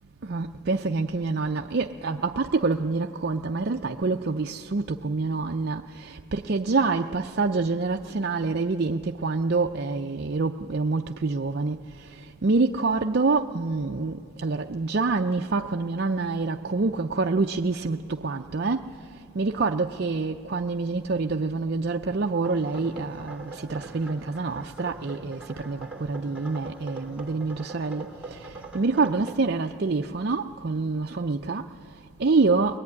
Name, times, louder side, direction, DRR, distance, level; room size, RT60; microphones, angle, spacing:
voice 1, 0.2-32.8, right 3 dB, 50° right, 0.5 m, -27 dB
sound 1, 22.4-29.4, right 3 dB, 5° right, 2.2 m, -41 dB
23.0 x 21.0 x 9.6 m
head